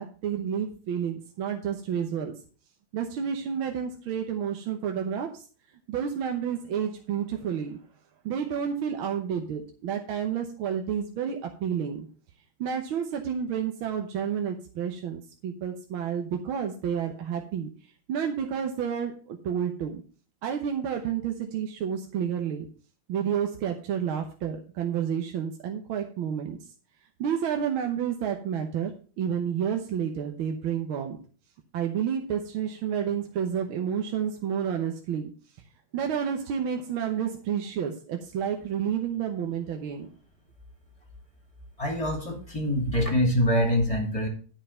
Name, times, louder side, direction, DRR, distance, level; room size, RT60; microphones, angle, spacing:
voice 1, 0.0-2.3 2.9-5.4 5.9-7.8 8.2-12.1 12.6-17.7 18.1-20.0 20.4-22.7 23.1-26.6 27.2-31.2 31.7-35.3 35.9-40.1, right 8 dB, 75° right, 3 dB, 1.8 m, -30 dB
voice 2, 41.8-44.3, equal, 15° left, 1 dB, 2.7 m, -25 dB
11.0 x 5.5 x 5.6 m, 0.38 s
omnidirectional pair, 2.3 m